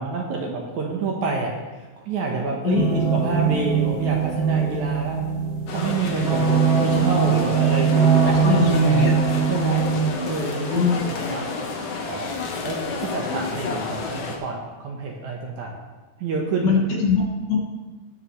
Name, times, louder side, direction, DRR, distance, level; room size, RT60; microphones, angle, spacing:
voice 1, 0.0-1.5 2.0-5.3 5.7-9.2 9.5-9.8 10.2-11.5 12.1-15.8 16.2-16.8, right 3 dB, 70° right, 0 dB, 1.9 m, -28 dB
voice 2, 2.6-3.1 8.3-9.1 10.7-11.0 16.6-17.6, left 5 dB, 65° left, -2 dB, 2.6 m, -22 dB
sound 1, 2.8-10.1, right 6 dB, 50° right, 2.1 m, -21 dB
sound 2, 5.7-14.4, left 4 dB, 80° left, 1.3 m, -31 dB
20.0 x 6.7 x 3.1 m, 1.2 s
omnidirectional pair, 4.6 m